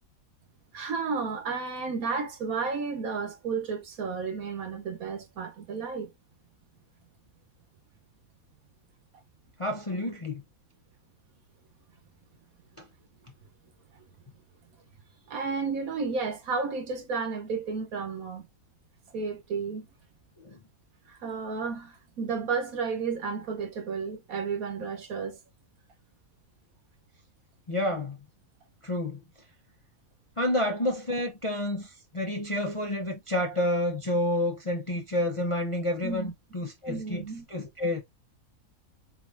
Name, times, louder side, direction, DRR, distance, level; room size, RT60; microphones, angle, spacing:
voice 1, 0.7-6.1 15.3-18.5 19.1-19.9 21.1-25.4 36.0-36.3 36.9-37.5, right 5 dB, 75° right, 1.4 m, -32 dB
voice 2, 9.6-10.4 12.8-12.9 20.4-20.6 27.7-28.2 28.8-29.2 30.4-37.2 37.5-38.0, left 1 dB, 40° left, 0.5 m, -29 dB
4.7 x 3.0 x 2.4 m
omnidirectional pair, 1.5 m